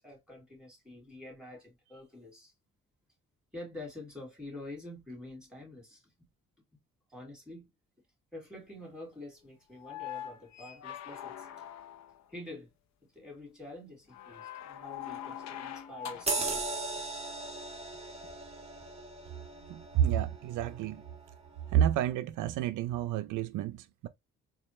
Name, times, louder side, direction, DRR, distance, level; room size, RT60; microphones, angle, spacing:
voice 1, 0.0-2.5 3.5-6.0 7.1-7.7 8.3-11.5 12.3-12.7 13.1-16.6, left 1 dB, ahead, 2.9 m, -47 dB
sound 1, 9.7-12.3 14.1-16.6 18.2-18.3, left 10 dB, 65° left, 0.6 m, -43 dB
sound 2, 16.3-21.2 21.7-21.8, right 3 dB, 20° right, 1.2 m, -38 dB
voice 2, 19.7-21.0 21.7-24.1, right 10 dB, 80° right, 0.5 m, -30 dB
4.1 x 2.4 x 3.1 m
cardioid pair, 90°, 30 cm